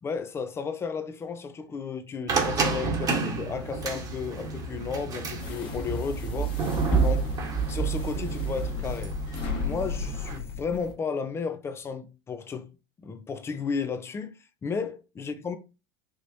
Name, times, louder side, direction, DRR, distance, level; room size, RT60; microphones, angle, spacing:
voice 1, 0.0-6.5 7.0-7.4 7.7-9.2 9.6-12.7 13.0-14.3 14.6-15.6, left 5 dB, 20° left, 0.6 m, -33 dB
sound 1, 2.3-10.4, right 4 dB, 30° right, 1.3 m, -32 dB
sound 2, 5.4-10.9, right 3 dB, 40° left, 1.5 m, -29 dB
4.9 x 3.1 x 2.7 m
supercardioid pair, 125°, 12 cm